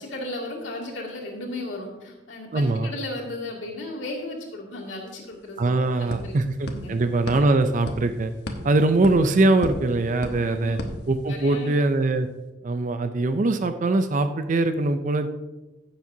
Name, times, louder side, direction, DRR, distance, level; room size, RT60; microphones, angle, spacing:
voice 1, 0.0-6.3 6.7-7.0 10.5-10.9 11.3-11.7, left 2 dB, 80° left, -3 dB, 2.6 m, -35 dB
voice 2, 2.5-2.9 5.6-8.3 8.6-10.8 11.1-12.3 12.6-15.3, right 2 dB, 40° right, 9 dB, 0.5 m, -22 dB
sound 1, 5.0-5.1 5.3-11.7, left 1 dB, 60° left, 1.2 m, -37 dB
15.5 x 7.3 x 2.7 m, 1.1 s
head